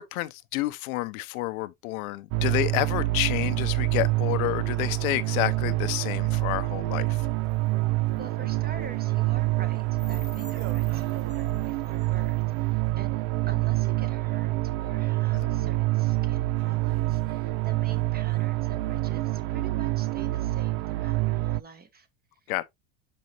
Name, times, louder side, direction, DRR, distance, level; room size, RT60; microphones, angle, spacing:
voice 1, 0.0-7.3 15.3-15.5 22.5-22.7, left 18 dB, 85° left, 0.8 m, -29 dB
sound 1, 2.3-21.6, right 19 dB, 65° right, 0.5 m, -27 dB
sound 2, 7.3-12.9, left 3 dB, 10° left, 1.3 m, -52 dB
voice 2, 8.1-22.1 22.4-22.7, right 4 dB, 20° right, 1.4 m, -46 dB
sound 3, 9.8-14.0 15.9-16.0 16.6-19.0, right 11 dB, 80° right, 0.9 m, -51 dB
6.4 x 5.3 x 2.9 m
supercardioid pair, 120°, 41 cm